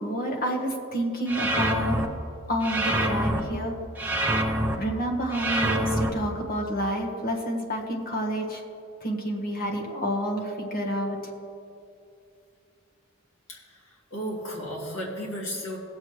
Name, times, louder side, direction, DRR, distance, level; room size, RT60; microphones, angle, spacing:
voice 1, 0.0-2.0 2.5-3.7 4.8-8.6 9.0-11.2, equal, 45° left, 1 dB, 1.5 m, -29 dB
sound 1, 1.3-2.1 2.6-3.4 4.0-4.7 5.3-6.1, right 1 dB, 10° right, 0.8 m, -25 dB
voice 2, 14.1-15.8, equal, 75° left, -3 dB, 2.6 m, -33 dB
18.0 x 7.7 x 3.2 m, 2.6 s
head